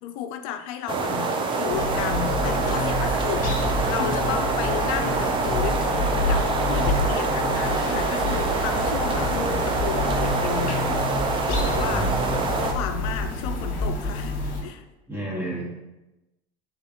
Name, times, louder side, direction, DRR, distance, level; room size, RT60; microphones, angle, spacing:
voice 1, 0.0-3.5 3.9-10.9 11.5-14.8, left 10 dB, 80° left, 7 dB, 0.4 m, -33 dB
sound 1, 0.9-12.7, right 4 dB, 30° right, 0.5 m, -25 dB
sound 2, 1.7-14.6, left 2 dB, 55° left, 1.1 m, -28 dB
voice 2, 15.1-15.7, right 1 dB, 10° right, -3 dB, 1.2 m, -31 dB
3.9 x 3.9 x 2.9 m, 1.0 s
supercardioid pair, 115°, 18 cm